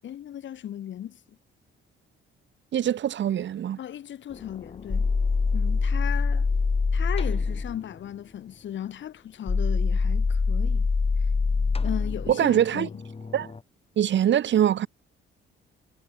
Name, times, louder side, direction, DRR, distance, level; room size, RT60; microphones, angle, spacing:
voice 1, 0.0-1.2 3.8-5.1 5.5-6.5 6.9-10.9 11.8-13.0, left 10 dB, 70° left, 7.7 m, -36 dB
voice 2, 2.7-3.8 12.3-12.9 13.3-13.5 14.0-14.9, right 10 dB, 65° right, 6.3 m, -23 dB
sound 1, 4.3-7.8 9.5-13.6, left 4 dB, 30° left, 4.5 m, -25 dB
cardioid pair, 90°, 20 cm